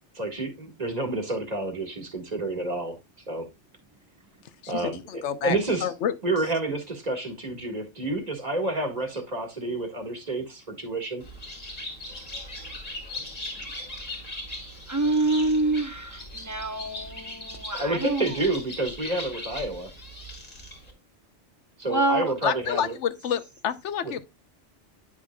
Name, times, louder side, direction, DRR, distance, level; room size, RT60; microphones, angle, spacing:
voice 1, 0.1-3.0 3.3-3.5 4.7-5.9 6.2-11.2 17.7-19.9 21.8-22.9 24.0-24.2, right 2 dB, 35° right, 1.9 m, -29 dB
voice 2, 4.6-6.1 22.4-24.2, left 9 dB, 75° left, 1.0 m, -29 dB
Bird, 11.2-20.9, left 1 dB, 35° left, 2.0 m, -39 dB
voice 3, 14.9-18.4 21.9-22.3, right 2 dB, 15° right, 1.0 m, -26 dB
9.8 x 6.1 x 2.3 m
omnidirectional pair, 1.2 m